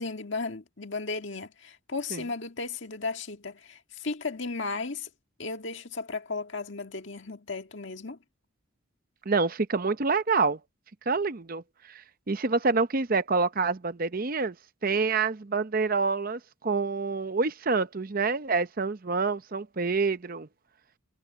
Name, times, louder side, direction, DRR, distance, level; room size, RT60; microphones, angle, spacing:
voice 1, 0.0-5.1 5.4-8.2, left 3 dB, 60° left, 1.9 m, -35 dB
voice 2, 9.3-10.6 11.1-11.6 11.9-14.5 14.8-20.5, right 4 dB, 45° right, 0.7 m, -27 dB
head